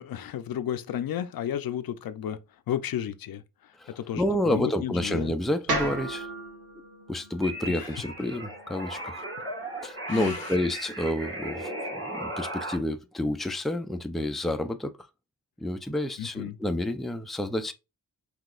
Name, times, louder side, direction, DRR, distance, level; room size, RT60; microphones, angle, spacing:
voice 1, 0.0-2.4 2.7-5.3 7.8-7.9 10.1-10.5 16.2-16.6, left 10 dB, 75° left, 0.6 m, -33 dB
voice 2, 4.1-6.3 7.1-9.2 9.8-14.9 15.6-17.7, left 1 dB, ahead, 0.5 m, -29 dB
sound 1, 5.7-9.8, right 2 dB, 80° right, 1.3 m, -36 dB
sound 2, 7.4-12.8, right 1 dB, 35° right, 2.3 m, -36 dB
5.9 x 2.9 x 2.4 m
cardioid pair, 90°, 36 cm